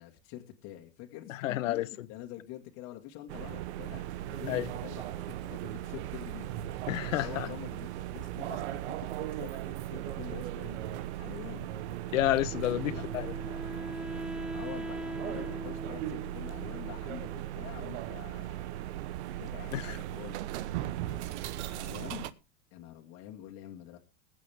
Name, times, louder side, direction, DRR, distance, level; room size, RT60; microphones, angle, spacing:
voice 1, 0.0-6.5 7.2-11.8 12.8-13.0 14.5-18.8 19.4-20.4 21.1-22.3 22.7-24.0, left 13 dB, 40° left, 2.1 m, -46 dB
voice 2, 1.3-2.1 4.5-4.7 6.9-7.5 12.1-13.3 19.7-19.9, left 14 dB, 75° left, 1.0 m, -30 dB
sound 1, 3.3-22.3, right 13 dB, 60° right, 1.1 m, -38 dB
Wind instrument woodwind instrument, 12.5-17.5, equal, ahead, 0.6 m, -41 dB
21.0 x 8.3 x 3.5 m
supercardioid pair, 135°, 39 cm